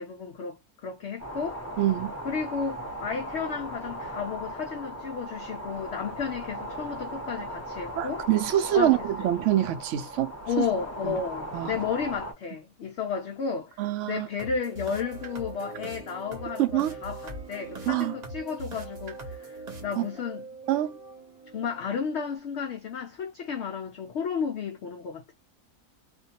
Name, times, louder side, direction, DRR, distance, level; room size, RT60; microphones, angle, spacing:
voice 1, 0.0-1.6 2.2-8.3 8.7-9.3 10.5-20.5 21.5-25.3, left 6 dB, 75° left, 0.6 m, -33 dB
sound 1, 1.2-12.3, right 1 dB, 15° left, 0.6 m, -38 dB
voice 2, 1.8-2.1 8.0-10.3 10.6-10.7 11.0-11.2 11.5-11.8 13.8-14.3 16.6-16.9 17.9-18.1 20.0-20.1 20.7-21.0, right 12 dB, 70° right, 0.7 m, -25 dB
sound 2, 14.4-22.3, right 3 dB, 35° right, 0.8 m, -41 dB
2.5 x 2.2 x 2.7 m
omnidirectional pair, 1.7 m